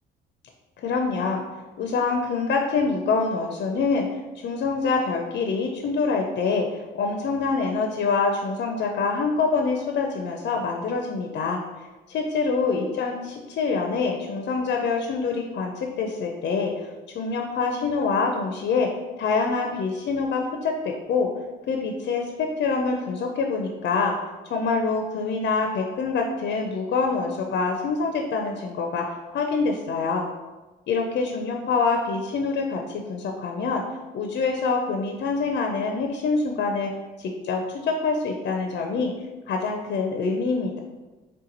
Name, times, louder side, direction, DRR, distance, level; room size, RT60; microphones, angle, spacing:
voice 1, 0.8-1.4 1.8-4.1 4.4-11.6 12.1-18.9 19.2-21.3 21.7-24.2 24.4-30.3 30.9-33.8 34.1-39.1 39.5-40.8, left 4 dB, 60° left, 2 dB, 0.5 m, -25 dB
3.4 x 2.9 x 3.9 m, 1.2 s
cardioid pair, 90°, 20 cm